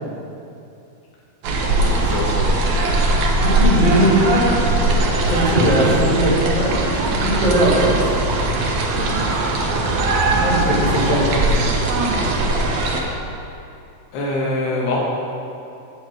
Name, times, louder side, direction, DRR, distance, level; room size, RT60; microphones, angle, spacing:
sound 1, 1.4-13.0, right 2 dB, 85° right, 1.5 m, -19 dB
voice 1, 1.8-2.6 7.2-7.4 10.9-11.2 14.1-15.0, left 2 dB, 80° left, -5 dB, 3.3 m, -25 dB
voice 2, 3.4-4.5 5.2-6.7 7.2-7.9 10.3-11.7 12.9-13.0, equal, 25° left, -9 dB, 1.0 m, -19 dB
9.7 x 8.1 x 4.8 m, 2.6 s
omnidirectional pair, 4.7 m